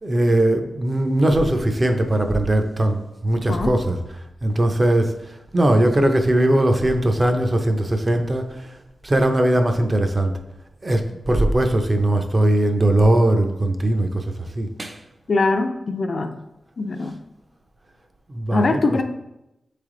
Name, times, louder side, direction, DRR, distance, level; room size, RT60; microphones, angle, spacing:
voice 1, 0.0-4.0 4.4-5.1 5.5-8.7 9.0-10.3 10.8-14.2 14.6-15.0 18.3-19.0, right 1 dB, 25° right, 5 dB, 0.5 m, -19 dB
voice 2, 15.3-16.4 16.8-17.1 18.5-19.0, left 3 dB, 45° left, 7 dB, 0.4 m, -22 dB
7.8 x 3.3 x 3.7 m, 0.90 s
wide cardioid pair, 155°, 0 cm